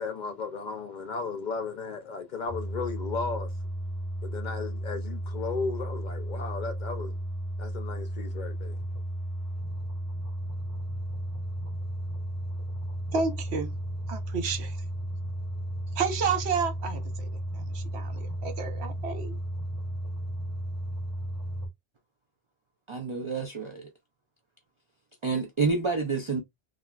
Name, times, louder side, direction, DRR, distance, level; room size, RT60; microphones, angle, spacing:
voice 1, 0.0-3.5 4.2-7.2 7.6-8.8, left 4 dB, 55° left, 0.6 m, -35 dB
sound 1, 2.5-21.7, right 1 dB, 20° right, 1.6 m, -34 dB
voice 2, 13.1-13.7 14.1-14.8 16.0-17.3 17.5-19.4, right 5 dB, 85° right, 1.0 m, -31 dB
voice 3, 22.9-23.9 25.2-26.4, right 4 dB, 40° right, 0.4 m, -28 dB
3.3 x 2.5 x 2.2 m
omnidirectional pair, 1.1 m